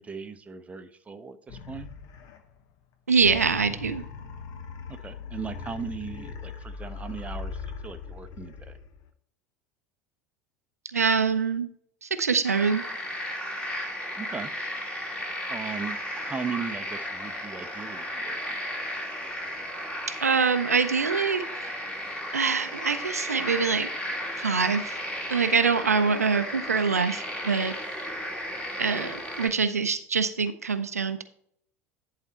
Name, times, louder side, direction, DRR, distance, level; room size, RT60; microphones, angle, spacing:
voice 1, 0.0-1.9 4.9-8.8 14.2-14.5 15.5-18.4 28.9-29.1, right 5 dB, 15° right, 8 dB, 0.7 m, -38 dB
sound 1, 1.5-2.6 3.1-9.1, left 5 dB, 50° left, 1.0 m, -40 dB
voice 2, 3.1-4.0 10.9-11.7 12.0-12.8 20.2-21.7 22.3-23.9 24.4-25.0 25.3-27.7 28.8-31.2, right 5 dB, 85° right, 10 dB, 0.5 m, -24 dB
sound 2, 12.4-29.5, equal, 15° left, 2.1 m, -34 dB
10.5 x 4.1 x 4.2 m, 0.65 s
figure-of-eight pair, 75°, 8 cm